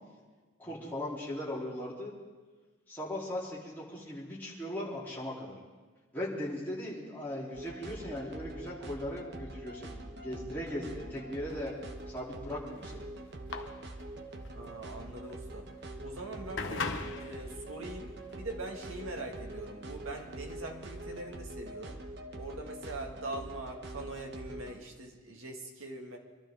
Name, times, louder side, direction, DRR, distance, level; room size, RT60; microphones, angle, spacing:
voice 1, 0.6-2.1 2.9-5.6 6.1-11.7 12.1-13.1, left 1 dB, 10° left, -8 dB, 3.5 m, -38 dB
sound 1, 7.5-24.8, right 1 dB, 50° right, 1.1 m, -44 dB
sound 2, 11.5-21.3, left 4 dB, 60° left, 0.9 m, -43 dB
voice 2, 14.5-15.7 16.0-16.9 17.2-22.0 22.4-26.2, right 2 dB, 75° right, 1 dB, 2.1 m, -42 dB
25.0 x 12.5 x 3.8 m, 1.3 s
head